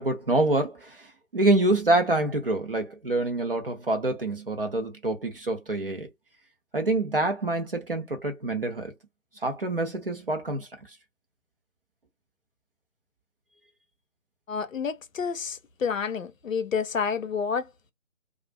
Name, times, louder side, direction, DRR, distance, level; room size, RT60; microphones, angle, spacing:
voice 1, 0.0-6.1 6.7-8.9 9.4-10.7, right 2 dB, 45° right, 0.8 m, -26 dB
voice 2, 14.5-17.9, left 6 dB, 70° left, 0.6 m, -29 dB
2.4 x 2.4 x 2.2 m
figure-of-eight pair, 160°, 41 cm